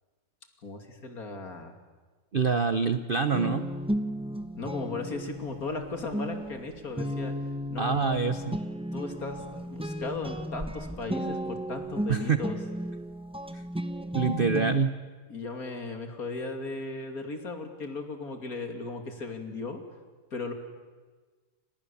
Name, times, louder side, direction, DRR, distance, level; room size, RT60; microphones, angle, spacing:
voice 1, 0.6-1.8 4.5-7.3 7.7-8.1 8.9-12.6 15.3-19.8 20.3-20.5, left 3 dB, 40° left, 5 dB, 3.1 m, -36 dB
voice 2, 2.3-3.7 7.8-8.6 12.1-12.4 13.5-13.6 14.1-15.0, right 5 dB, 65° right, 10 dB, 0.5 m, -26 dB
sound 1, 3.3-14.8, equal, 5° right, 0.6 m, -34 dB
30.0 x 26.5 x 7.2 m, 1.4 s
omnidirectional pair, 2.3 m